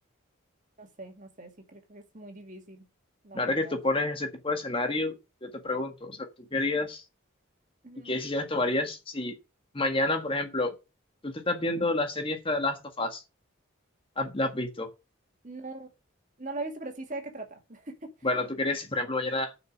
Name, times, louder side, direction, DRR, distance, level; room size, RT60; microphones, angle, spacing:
voice 1, 0.8-2.8 3.2-3.8 7.8-8.1 15.4-15.9 16.4-18.0, right 2 dB, 35° right, 2.4 m, -41 dB
voice 2, 3.3-5.1 5.4-6.2 6.5-7.0 8.0-9.3 9.7-10.7 11.2-13.2 14.2-14.9 18.2-19.5, left 2 dB, 25° left, 1.6 m, -29 dB
7.3 x 6.2 x 7.6 m
head